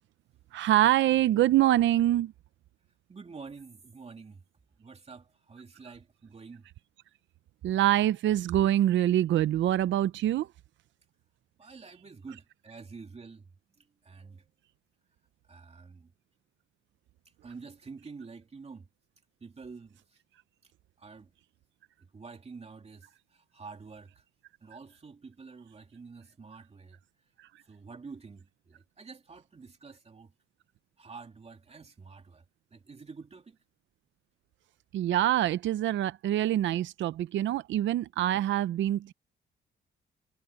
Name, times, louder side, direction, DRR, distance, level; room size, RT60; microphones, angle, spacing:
voice 1, 0.5-2.3 7.6-10.5 34.9-39.1, right 13 dB, 70° right, 0.6 m, -25 dB
voice 2, 3.1-4.4 4.8-6.7 11.6-13.5 13.8-14.5 15.5-16.1 17.4-18.9 19.4-20.2 20.6-20.7 21.0-21.3 22.0-24.2 24.6-27.0 27.6-30.3 31.0-32.4 32.7-33.6, right 4 dB, 30° right, 3.0 m, -48 dB
cardioid pair, 90°, 20 cm